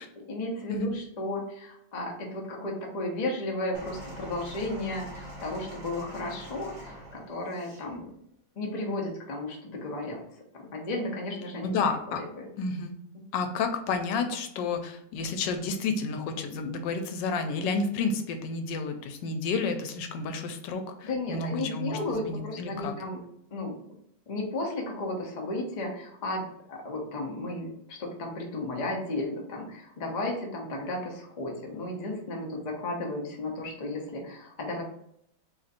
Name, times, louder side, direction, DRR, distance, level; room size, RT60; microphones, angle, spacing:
voice 1, 0.2-8.1 8.6-10.2 10.5-11.8 12.1-12.5 13.1-13.2 21.0-23.2 23.5-23.8 24.3-34.8, left 2 dB, 65° left, 0 dB, 0.4 m, -34 dB
sound 1, 3.7-7.9 8.8-8.9, equal, 45° right, 1.5 m, -44 dB
voice 2, 11.6-12.2 12.6-12.9 13.3-22.9, left 4 dB, 85° left, 6 dB, 1.3 m, -31 dB
3.0 x 2.5 x 4.0 m, 0.73 s
omnidirectional pair, 1.9 m